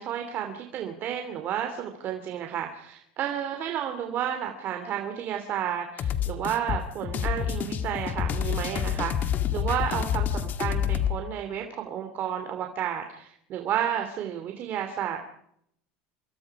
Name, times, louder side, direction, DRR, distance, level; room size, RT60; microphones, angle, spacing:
voice 1, 0.0-10.2 10.6-15.2, right 9 dB, 45° right, 5 dB, 3.0 m, -31 dB
sound 1, 6.0-11.1, left 9 dB, 40° left, 2.0 m, -28 dB
26.0 x 22.5 x 4.9 m, 0.72 s
supercardioid pair, 125°, 5 cm